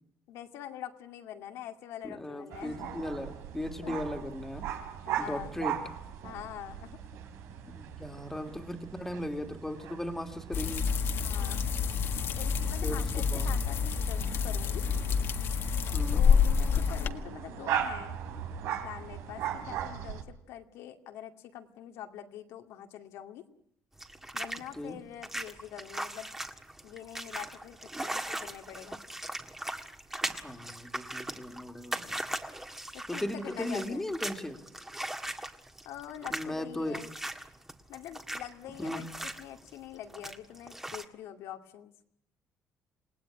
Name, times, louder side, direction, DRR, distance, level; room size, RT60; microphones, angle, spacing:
voice 1, 0.3-3.0 3.8-4.0 5.1-5.6 6.2-7.0 11.1-11.6 12.4-14.9 16.1-18.1 18.8-23.4 24.3-26.3 26.8-29.0 32.9-34.1 35.8-37.1 37.9-41.9, left 11 dB, 90° left, 5 dB, 2.4 m, -44 dB
voice 2, 2.0-4.7 5.2-5.8 7.7-10.9 12.8-13.5 15.9-16.3 24.7-25.0 30.3-32.3 33.1-34.6 36.3-37.0 38.8-39.0, left 1 dB, 5° left, 5 dB, 2.3 m, -37 dB
sound 1, 2.5-20.2, right 9 dB, 85° right, 3.6 m, -39 dB
sound 2, 10.5-17.1, left 6 dB, 55° left, 1.7 m, -28 dB
sound 3, 24.0-41.0, right 1 dB, 10° right, 1.7 m, -39 dB
28.5 x 19.0 x 10.0 m, 0.72 s
cardioid pair, 130°, 5 cm